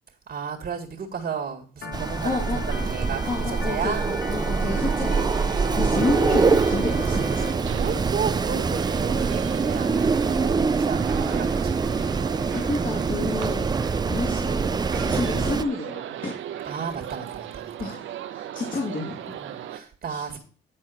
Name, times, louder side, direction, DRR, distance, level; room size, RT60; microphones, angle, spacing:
voice 1, 0.3-4.1 5.4-6.3 7.8-12.0 16.6-17.9 19.4-20.4, right 6 dB, 50° right, 1.9 m, -34 dB
Organ, 1.8-7.5, left 4 dB, 60° left, 1.8 m, -38 dB
Wind, 1.9-15.6, right 4 dB, 20° right, 0.4 m, -24 dB
voice 2, 2.2-2.6 3.3-7.5 12.5-13.7 14.0-16.4 17.8-19.3 20.1-20.4, left 3 dB, 45° left, 2.6 m, -30 dB
sound 1, 4.8-19.8, right 10 dB, 75° right, 0.9 m, -37 dB
10.0 x 4.2 x 6.1 m
cardioid pair, 90°, 20 cm